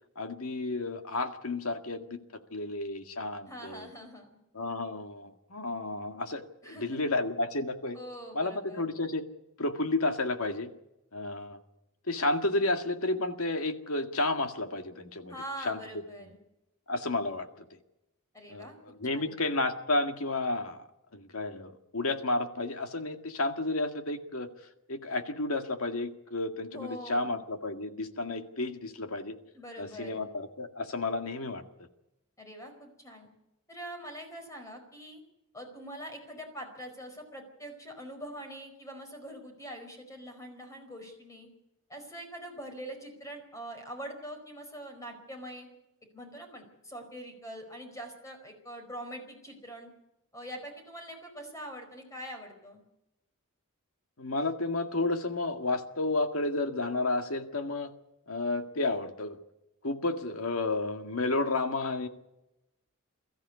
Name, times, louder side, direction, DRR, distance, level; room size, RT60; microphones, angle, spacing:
voice 1, 0.2-2.2 2.5-3.9 4.5-8.0 8.3-9.2 9.6-10.7 11.1-11.6 12.1-15.3 15.6-15.8 16.2-16.3 16.9-17.5 18.5-18.7 19.0-20.9 21.1-24.5 24.9-29.4 29.8-31.6 54.2-57.9 58.3-59.4 59.8-62.1, left 2 dB, 80° left, 7 dB, 1.9 m, -31 dB
voice 2, 3.5-4.4 6.6-7.0 7.9-8.9 15.3-16.4 18.3-19.4 26.7-27.3 29.5-30.2 32.4-33.3 33.7-35.2 35.5-41.5 41.9-45.7 46.1-49.9 50.3-52.8, equal, 15° left, 4 dB, 4.8 m, -44 dB
22.0 x 14.0 x 8.3 m, 0.90 s
head